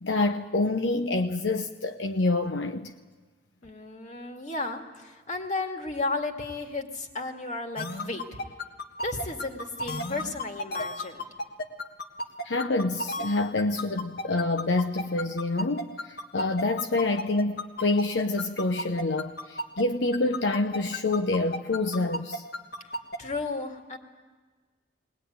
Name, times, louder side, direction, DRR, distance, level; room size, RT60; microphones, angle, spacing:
voice 1, 0.0-2.9 12.4-22.4, left 2 dB, 80° left, 0.8 m, -27 dB
voice 2, 3.6-8.2 9.0-11.2 23.2-24.0, left 3 dB, 40° left, 2.2 m, -33 dB
sound 1, 7.8-19.8 20.1-23.2, left 1 dB, 60° left, 1.6 m, -33 dB
20.5 x 19.5 x 9.4 m
head